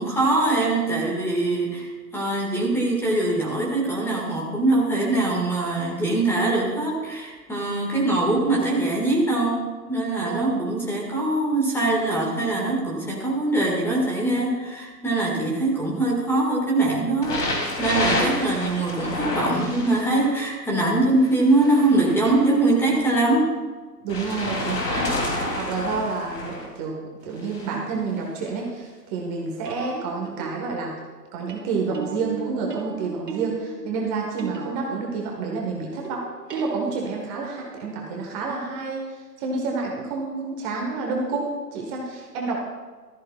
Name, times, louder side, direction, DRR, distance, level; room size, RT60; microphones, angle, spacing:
voice 1, 0.0-23.5, right 2 dB, 5° left, -2 dB, 1.7 m, -23 dB
voice 2, 10.2-10.5 24.0-27.0 27.2-30.9 31.3-36.2 36.5-39.1 39.4-42.6, right 4 dB, 25° right, -1 dB, 1.4 m, -29 dB
sound 1, 17.2-20.3 21.2-23.1 24.1-26.7 27.4-27.8 28.6-28.7, left 2 dB, 70° left, 3.0 m, -29 dB
sound 2, 28.1-28.3 29.7-35.6 36.0-37.4 39.8-39.9, right 5 dB, 80° right, 1.9 m, -38 dB
15.0 x 13.5 x 2.3 m, 1.4 s
figure-of-eight pair, 130°, 48 cm